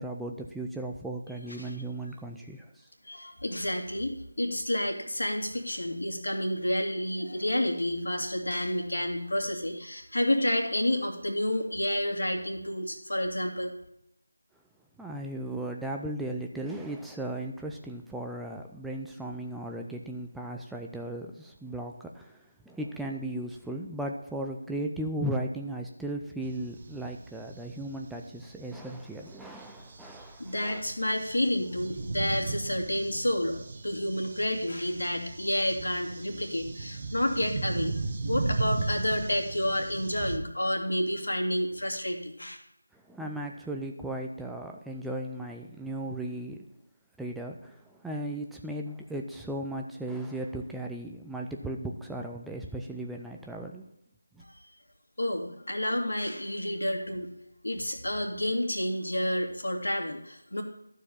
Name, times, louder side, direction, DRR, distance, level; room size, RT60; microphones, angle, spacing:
voice 1, 0.0-2.7 15.0-22.3 22.7-30.8 43.1-46.6 47.2-53.8, right 1 dB, ahead, 1 dB, 0.4 m, -36 dB
voice 2, 1.5-1.8 3.0-13.7 30.0-30.1 30.4-37.9 38.2-42.6 54.5-54.6 55.2-57.3 57.6-60.6, left 1 dB, 75° left, 3 dB, 2.5 m, -30 dB
sound 1, 26.4-40.4, right 3 dB, 35° right, 1.0 m, -37 dB
12.5 x 4.7 x 7.1 m, 0.79 s
figure-of-eight pair, 165°, 0 cm